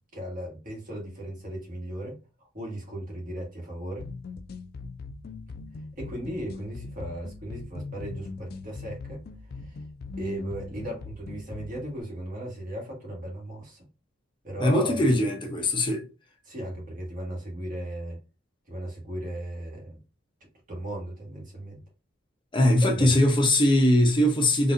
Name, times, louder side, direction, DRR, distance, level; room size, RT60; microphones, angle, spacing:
voice 1, 0.1-2.2 2.5-4.1 6.0-9.2 9.5-9.8 10.2-13.9 14.4-15.1 16.4-18.2 18.7-20.0 20.7-21.8 22.8-23.1, right 1 dB, 45° right, 1.6 m, -36 dB
sound 1, 4.0-12.0, left 3 dB, 55° left, 0.4 m, -40 dB
voice 2, 14.6-16.1 22.5-24.7, left 1 dB, 25° left, 0.7 m, -21 dB
4.0 x 2.6 x 2.6 m
head